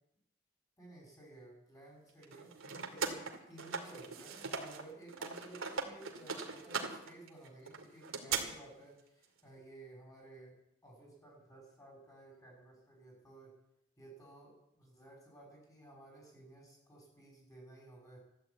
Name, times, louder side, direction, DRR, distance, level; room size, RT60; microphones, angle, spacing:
voice 1, 0.8-10.6 10.8-13.5 14.0-18.2, right 2 dB, 15° left, -1 dB, 6.4 m, -55 dB
sound 1, 2.2-4.8 5.1-8.4, right 5 dB, 85° right, 2.4 m, -39 dB
14.0 x 11.5 x 8.3 m, 0.80 s
head